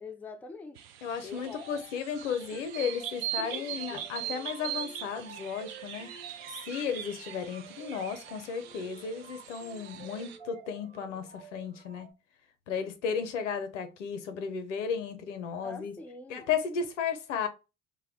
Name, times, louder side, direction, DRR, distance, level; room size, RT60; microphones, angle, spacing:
voice 1, 0.0-0.8 1.2-1.6 3.4-4.1 15.6-16.5, left 4 dB, 5° left, 0.3 m, -44 dB
sound 1, 0.7-10.4, right 11 dB, 65° right, 0.5 m, -41 dB
voice 2, 1.0-6.1 6.7-12.1 12.7-15.9 16.3-17.5, left 6 dB, 85° left, 0.6 m, -34 dB
sound 2, 1.5-12.1, right 6 dB, 85° right, 1.3 m, -51 dB
2.1 x 2.1 x 3.4 m
hypercardioid pair, 55°, 35 cm